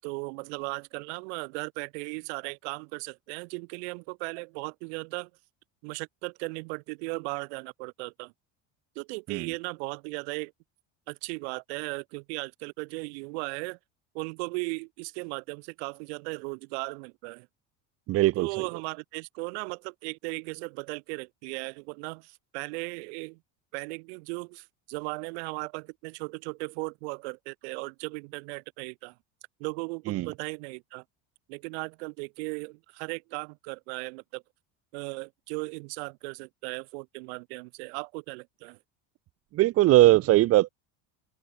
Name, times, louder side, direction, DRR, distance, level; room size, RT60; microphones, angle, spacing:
voice 1, 0.0-5.3 5.8-8.3 9.0-10.5 11.1-13.8 14.1-17.5 18.4-23.4 23.7-29.1 29.6-31.0 31.5-34.4 34.9-38.8, right 30 dB, 85° right, 7.3 m, -37 dB
voice 2, 18.1-18.7 30.1-30.3 39.5-40.7, right 17 dB, 45° right, 6.4 m, -21 dB
open air
cardioid pair, 170°, 32 cm